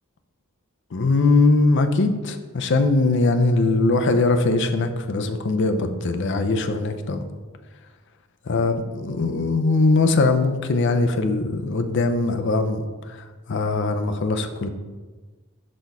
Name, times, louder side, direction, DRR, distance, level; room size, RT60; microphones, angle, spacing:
voice 1, 0.9-7.2 8.5-14.7, left 3 dB, 55° left, 7 dB, 0.5 m, -21 dB
5.4 x 4.2 x 4.6 m, 1.3 s
head